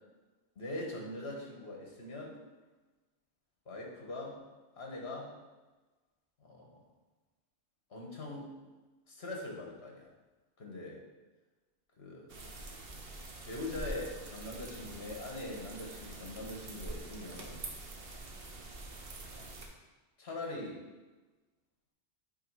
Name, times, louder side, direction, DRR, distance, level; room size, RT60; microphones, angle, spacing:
voice 1, 0.5-2.4 3.6-4.4 4.8-5.3 6.4-6.8 7.9-8.6 9.1-10.1 10.6-11.0 12.0-12.4 13.4-17.7 19.2-19.6 20.2-20.9, left 2 dB, 65° left, -1 dB, 1.7 m, -42 dB
sound 1, 12.3-19.7, right 2 dB, 55° right, 1.1 m, -45 dB
8.4 x 3.3 x 4.8 m, 1.2 s
omnidirectional pair, 1.2 m